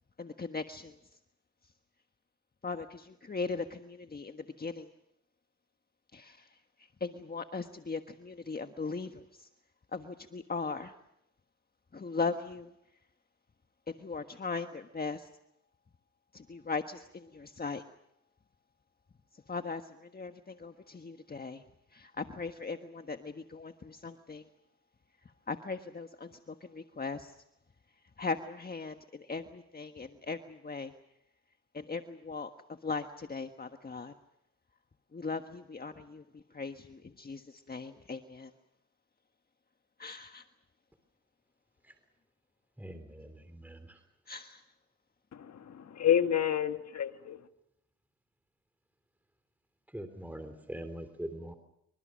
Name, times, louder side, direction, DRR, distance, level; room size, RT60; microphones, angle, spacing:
voice 1, 0.2-1.0 2.6-4.9 6.1-9.5 9.9-10.9 11.9-12.7 13.9-15.3 16.3-17.8 19.3-21.6 21.9-24.5 25.5-27.4 28.2-30.9 31.7-32.5 32.8-34.1 35.1-38.5 40.0-40.4 44.3-44.6, left 4 dB, 30° left, 6 dB, 1.5 m, -39 dB
voice 2, 42.8-44.0 49.9-51.5, right 1 dB, 5° right, 8 dB, 3.4 m, -43 dB
voice 3, 45.3-47.4, left 9 dB, 65° left, 8 dB, 1.7 m, -29 dB
27.0 x 24.5 x 6.5 m, 0.79 s
cardioid pair, 75°, 29 cm